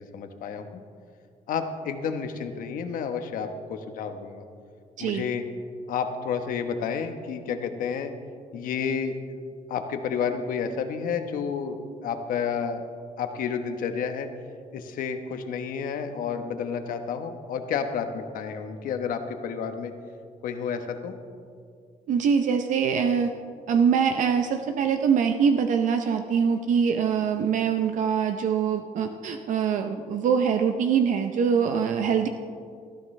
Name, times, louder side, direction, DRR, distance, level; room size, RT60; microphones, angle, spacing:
voice 1, 0.1-0.8 1.5-4.4 5.0-5.4 5.9-8.1 8.5-9.2 9.7-12.8 13.2-14.3 14.7-19.9 20.4-21.1, left 6 dB, 90° left, 7 dB, 1.2 m, -30 dB
voice 2, 22.1-23.3 23.7-32.3, right 7 dB, 65° right, 7 dB, 0.7 m, -23 dB
20.0 x 14.0 x 3.3 m, 2.2 s
cardioid pair, 175°, 14 cm